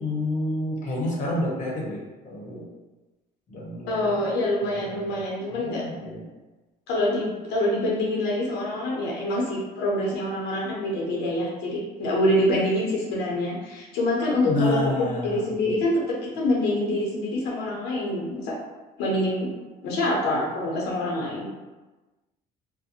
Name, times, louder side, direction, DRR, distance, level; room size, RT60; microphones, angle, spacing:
voice 1, 0.0-2.7 3.5-4.4 4.6-5.2 5.5-6.3 14.3-15.8, left 1 dB, 50° left, -3 dB, 0.8 m, -29 dB
voice 2, 3.9-5.8 6.9-14.9 15.2-18.6 19.0-19.5 19.8-21.5, left 1 dB, 85° left, -4 dB, 0.7 m, -26 dB
2.5 x 2.1 x 2.7 m, 1.1 s
cardioid pair, 110°, 17 cm